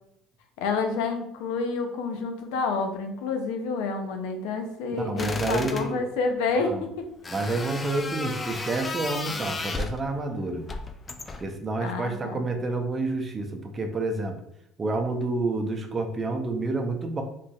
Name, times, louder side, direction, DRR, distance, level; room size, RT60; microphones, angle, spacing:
voice 1, 0.6-6.9 11.8-12.4, left 4 dB, 80° left, 5 dB, 0.5 m, -29 dB
voice 2, 4.9-6.0 6.6-6.8 7.3-10.7 11.4-14.4 14.8-17.2, right 2 dB, 30° right, 4 dB, 0.7 m, -29 dB
sound 1, 5.2-5.9 7.2-10.0 10.7-11.5, left 3 dB, 25° left, 0.4 m, -34 dB
3.8 x 3.1 x 2.3 m, 0.75 s
supercardioid pair, 80°, 0 cm